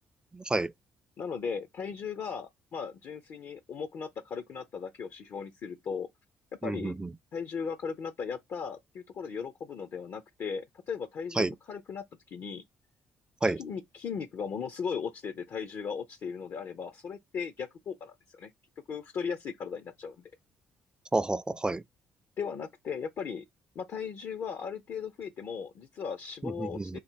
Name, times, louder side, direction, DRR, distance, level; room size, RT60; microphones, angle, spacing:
voice 1, 0.3-0.7 6.6-7.1 11.4-11.5 13.4-13.6 21.1-21.8 26.6-27.0, right 2 dB, 15° right, 0.3 m, -29 dB
voice 2, 1.2-6.1 6.6-6.9 7.3-12.6 13.6-18.5 18.9-20.2 22.4-23.4 23.8-27.0, left 6 dB, 55° left, 0.5 m, -37 dB
3.8 x 2.6 x 4.4 m
hypercardioid pair, 50°, 5 cm